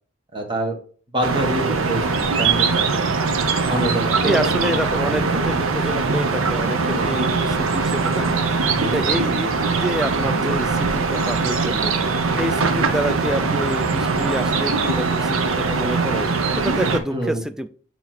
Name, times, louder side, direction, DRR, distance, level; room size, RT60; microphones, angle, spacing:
voice 1, 0.3-0.8 1.1-3.0 3.7-4.5 5.0-5.2 6.9-7.1 8.8-8.9 17.1-17.4, right 1 dB, 25° right, 2 dB, 1.3 m, -26 dB
sound 1, 1.2-17.0, right 4 dB, 70° right, 0.8 m, -21 dB
voice 2, 4.2-6.8 7.0-8.4 8.9-12.0 12.3-17.7, right 1 dB, 5° right, 11 dB, 0.3 m, -28 dB
8.3 x 3.0 x 4.3 m, 0.43 s
head